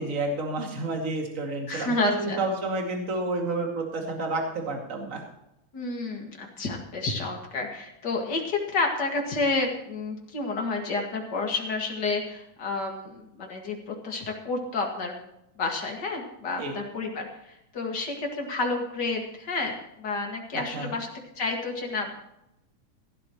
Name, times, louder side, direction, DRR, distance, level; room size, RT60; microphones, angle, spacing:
voice 1, 0.0-5.2 16.6-16.8 20.5-20.9, right 2 dB, 25° right, 1 dB, 2.3 m, -30 dB
voice 2, 1.7-2.4 5.7-15.2 15.6-21.1 21.4-22.1, left 3 dB, 35° left, 2 dB, 2.2 m, -30 dB
16.5 x 12.0 x 3.1 m, 0.84 s
omnidirectional pair, 3.6 m